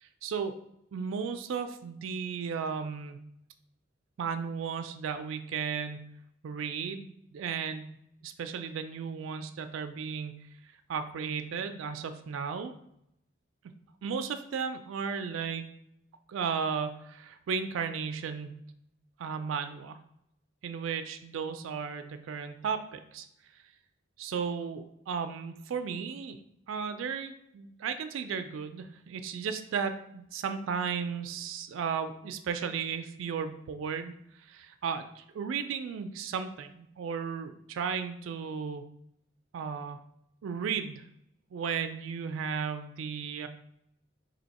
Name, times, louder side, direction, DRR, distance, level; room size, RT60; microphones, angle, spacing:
voice 1, 0.0-0.5 0.9-3.2 4.2-6.1 6.4-8.0 8.2-10.5 10.9-12.7 14.0-15.7 16.3-18.6 19.2-20.0 20.6-23.3 24.2-26.4 26.7-34.1 34.4-38.9 39.5-40.0 40.4-41.0 41.5-43.5, right 6 dB, 80° right, 8 dB, 0.3 m, -35 dB
3.4 x 2.8 x 4.1 m, 0.77 s
head